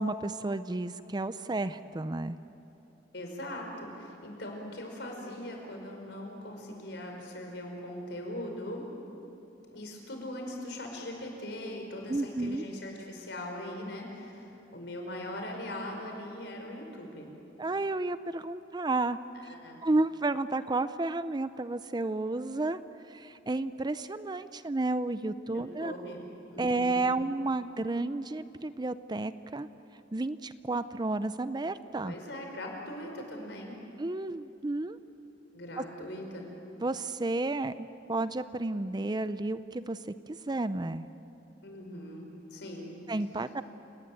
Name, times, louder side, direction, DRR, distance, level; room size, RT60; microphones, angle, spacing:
voice 1, 0.0-2.4 12.1-12.6 17.6-19.2 19.8-22.8 23.1-25.9 26.6-29.7 30.1-32.1 34.0-35.0 35.8-35.9 36.8-40.0 40.3-41.1 43.1-43.6, right 2 dB, 25° right, 13 dB, 0.5 m, -31 dB
voice 2, 3.1-8.9 9.7-17.3 19.4-19.8 25.5-26.2 26.5-27.1 32.0-33.8 35.5-36.5 41.6-42.9, left 1 dB, 65° left, 2 dB, 5.4 m, -40 dB
29.5 x 19.0 x 9.3 m, 2.9 s
head